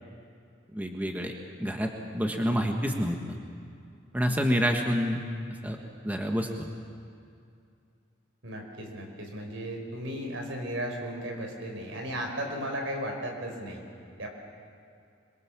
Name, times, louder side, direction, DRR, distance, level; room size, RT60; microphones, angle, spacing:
voice 1, 0.7-1.3 1.6-3.2 4.1-5.2 5.6-5.8 6.0-6.7, equal, 10° right, 2 dB, 1.4 m, -28 dB
voice 2, 8.4-13.8 14.2-14.3, equal, 85° right, 2 dB, 5.0 m, -35 dB
26.5 x 23.0 x 7.4 m, 2.4 s
head